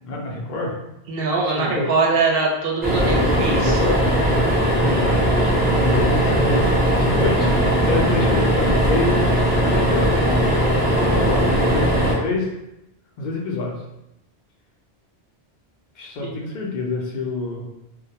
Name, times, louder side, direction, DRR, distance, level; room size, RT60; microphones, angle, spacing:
voice 1, 0.0-0.7 1.5-1.9 3.0-4.0 4.7-10.3 11.0-12.5 13.2-13.8 16.0-17.7, left 2 dB, 55° left, -1 dB, 0.6 m, -27 dB
voice 2, 1.1-3.8 16.2-16.4, right 3 dB, 65° right, -2 dB, 0.8 m, -22 dB
sound 1, 2.8-12.1, right 1 dB, 10° right, 0.6 m, -19 dB
2.1 x 2.1 x 2.8 m, 0.88 s
omnidirectional pair, 1.1 m